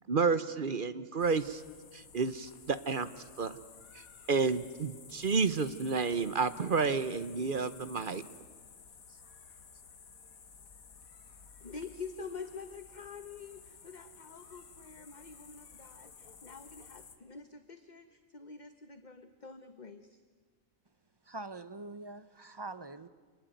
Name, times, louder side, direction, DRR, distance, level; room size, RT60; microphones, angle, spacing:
voice 1, 0.1-1.6 1.9-3.6 3.9-4.0 4.3-8.2, right 4 dB, 45° right, 0.9 m, -31 dB
sound 1, 1.2-17.2, left 5 dB, 85° left, 2.0 m, -54 dB
voice 2, 11.6-20.2, left 5 dB, 35° left, 1.0 m, -47 dB
voice 3, 21.3-23.1, right 3 dB, 25° right, 0.5 m, -44 dB
26.5 x 19.5 x 9.2 m
omnidirectional pair, 1.4 m